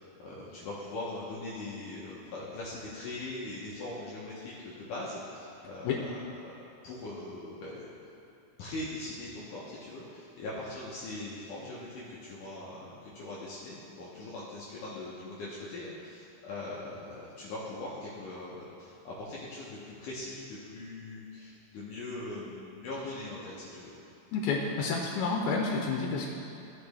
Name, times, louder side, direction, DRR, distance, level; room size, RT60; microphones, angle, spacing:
voice 1, 0.0-6.5 6.8-7.9 8.6-24.1, left 2 dB, 70° left, -7 dB, 2.3 m, -41 dB
voice 2, 24.3-26.3, left 4 dB, 85° left, -1 dB, 2.6 m, -29 dB
15.0 x 5.2 x 3.4 m, 2.8 s
omnidirectional pair, 4.2 m